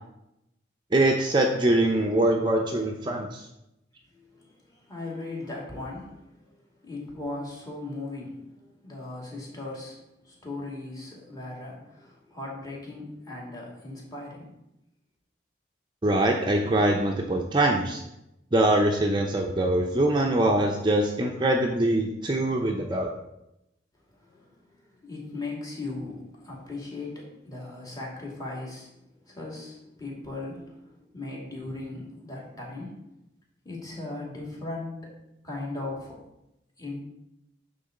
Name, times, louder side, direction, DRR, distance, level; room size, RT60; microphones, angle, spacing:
voice 1, 0.9-3.4 16.0-18.0 18.5-23.1, right 1 dB, 25° right, 1 dB, 0.7 m, -23 dB
voice 2, 4.1-10.0 10.2-14.6 24.1-33.0 33.6-35.1 35.4-36.2 36.8-37.0, left 2 dB, 20° left, -3 dB, 2.6 m, -38 dB
9.5 x 3.9 x 6.5 m, 0.87 s
head